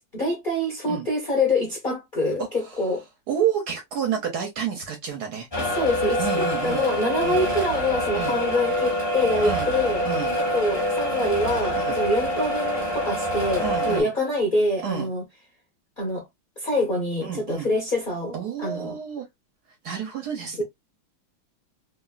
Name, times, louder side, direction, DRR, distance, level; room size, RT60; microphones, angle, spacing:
voice 1, 0.0-3.0 5.6-10.0 10.4-15.2 16.0-16.2 16.6-18.9 20.6-20.7, left 1 dB, 45° left, 0.6 m, -26 dB
voice 2, 3.3-5.5 6.2-6.9 7.2-7.4 8.1-8.4 9.4-9.7 10.0-10.4 11.7-12.0 13.6-14.1 14.8-15.1 17.2-17.7 18.3-19.2 19.8-20.6, right 8 dB, 70° right, 1.0 m, -29 dB
sound 1, 5.5-14.0, equal, 20° left, 0.9 m, -26 dB
3.0 x 2.5 x 2.3 m
omnidirectional pair, 2.1 m